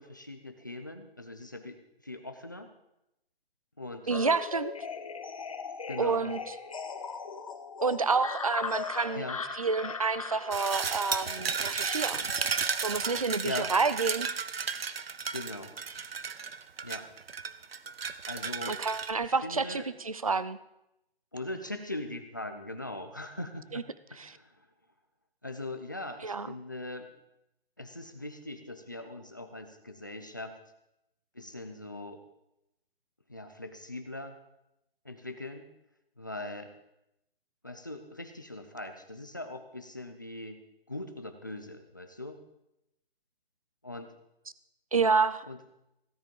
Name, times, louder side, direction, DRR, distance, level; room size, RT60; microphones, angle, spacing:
voice 1, 0.0-2.7 3.8-4.1 5.9-6.4 9.2-9.4 13.4-13.7 15.3-15.7 16.8-17.1 18.0-18.8 19.2-19.9 21.3-23.8 24.1-24.5 25.4-27.1 27.8-30.6 31.3-32.2 33.3-34.4 35.0-35.7 36.2-36.7 37.6-40.6 40.9-42.4 43.8-44.1 45.5-45.6, left 2 dB, 20° left, 7 dB, 0.6 m, -40 dB
sound 1, 4.1-13.2, left 5 dB, 35° left, 1.1 m, -39 dB
voice 2, 4.1-4.7 6.0-6.5 7.8-9.2 9.5-12.3 12.8-14.3 18.7-20.6 23.7-23.8 24.2-24.3 26.2-26.5 44.9-45.5, right 4 dB, 35° right, 16 dB, 0.4 m, -29 dB
sound 2, 10.5-19.1, right 6 dB, 70° right, 1.0 m, -34 dB
17.0 x 10.0 x 5.2 m, 0.87 s
hypercardioid pair, 180°, 31 cm